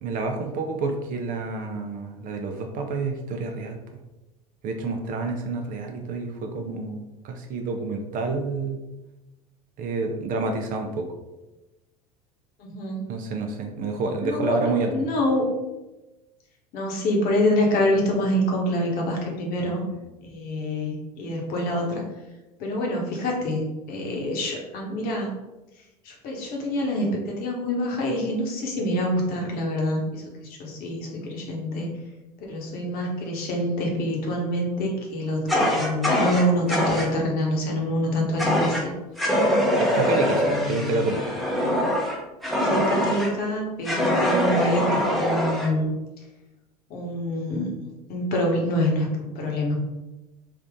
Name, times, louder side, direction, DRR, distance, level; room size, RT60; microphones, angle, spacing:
voice 1, 0.0-3.8 4.6-8.8 9.8-11.1 13.1-14.9 19.6-19.8 39.8-41.2, right 3 dB, 45° right, 4 dB, 0.6 m, -29 dB
voice 2, 12.6-13.1 14.2-14.6 14.9-15.5 16.7-19.8 20.2-22.0 22.6-25.4 26.0-30.2 30.6-31.9 32.4-38.9 40.4-41.1 42.6-45.9 46.9-49.7, left 1 dB, 50° left, -1 dB, 1.2 m, -26 dB
Fire, 35.5-37.1 38.4-38.8 39.2-43.3 43.8-45.7, equal, ahead, 0.8 m, -23 dB
3.5 x 2.5 x 3.6 m, 1.0 s
hypercardioid pair, 80°, 20 cm